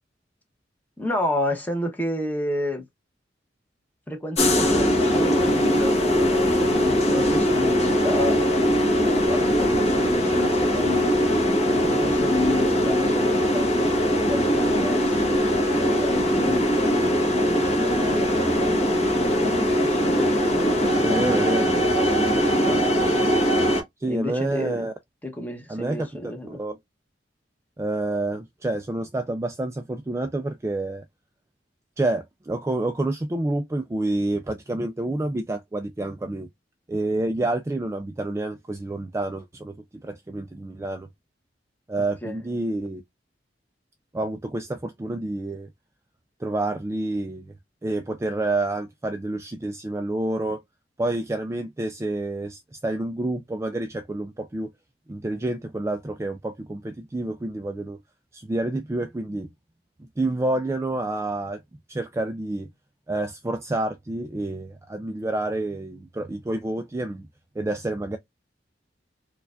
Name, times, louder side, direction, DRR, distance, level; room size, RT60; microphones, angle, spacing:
voice 1, 1.0-2.8 4.1-8.4 9.0-11.3 11.7-13.7 14.2-15.4 15.8-20.3 20.9-23.0 24.1-24.9 25.2-26.6 42.2-42.4, left 1 dB, 10° left, 0.9 m, -31 dB
sound 1, 4.4-23.8, equal, 35° left, 1.1 m, -21 dB
voice 2, 20.8-21.7 24.0-24.9 25.7-26.8 27.8-31.0 32.0-36.5 36.9-39.8 40.0-41.1 41.9-43.0 44.1-45.7 46.4-47.5 47.8-50.6 51.0-54.7 55.1-58.0 58.3-59.5 60.0-61.6 61.9-62.7 63.1-67.3 67.6-68.2, right 2 dB, 15° right, 0.3 m, -28 dB
4.6 x 2.3 x 2.4 m
head